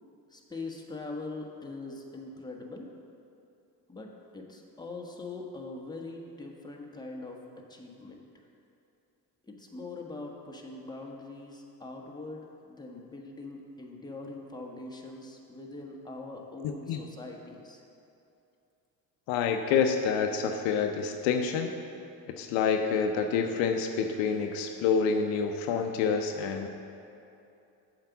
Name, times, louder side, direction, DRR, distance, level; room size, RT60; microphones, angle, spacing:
voice 1, 0.3-2.9 3.9-8.3 9.4-17.8, left 3 dB, 10° left, 0 dB, 1.3 m, -42 dB
voice 2, 16.6-17.0 19.3-21.7 22.3-26.7, left 6 dB, 70° left, 5 dB, 0.7 m, -28 dB
7.4 x 5.0 x 7.0 m, 2.7 s
hypercardioid pair, 55°, 48 cm